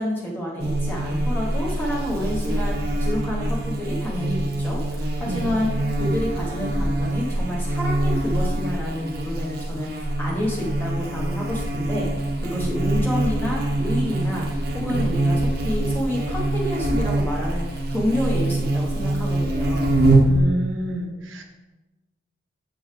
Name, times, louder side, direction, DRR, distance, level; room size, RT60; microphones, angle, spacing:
voice 1, 0.0-5.7 6.0-14.5 14.7-20.0, left 1 dB, 10° left, -3 dB, 1.0 m, -29 dB
Buzz, 0.6-20.4, right 1 dB, 55° right, 1.0 m, -24 dB
voice 2, 5.3-5.6 12.5-12.7 14.9-15.2 20.2-21.4, right 1 dB, 80° right, 4 dB, 0.7 m, -30 dB
7.1 x 6.2 x 3.2 m, 1.1 s
head